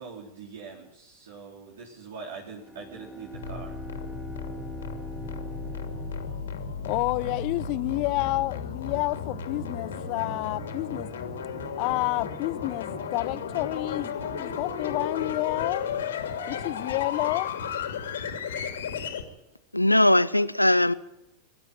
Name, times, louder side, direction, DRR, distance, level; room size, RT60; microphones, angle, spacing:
voice 1, 0.0-3.8, right 5 dB, 60° right, 4.0 m, -43 dB
Bowed string instrument, 2.6-7.2, right 2 dB, 5° left, 3.7 m, -43 dB
sound 1, 3.3-19.2, left 6 dB, 65° left, 2.8 m, -34 dB
sound 2, 3.5-15.8, right 7 dB, 35° right, 4.1 m, -55 dB
voice 2, 6.8-11.1 11.8-15.9 16.5-17.5, left 22 dB, 45° left, 0.6 m, -29 dB
voice 3, 19.7-20.9, left 1 dB, 85° left, 0.7 m, -20 dB
23.5 x 12.0 x 9.2 m
figure-of-eight pair, 90°, 0 cm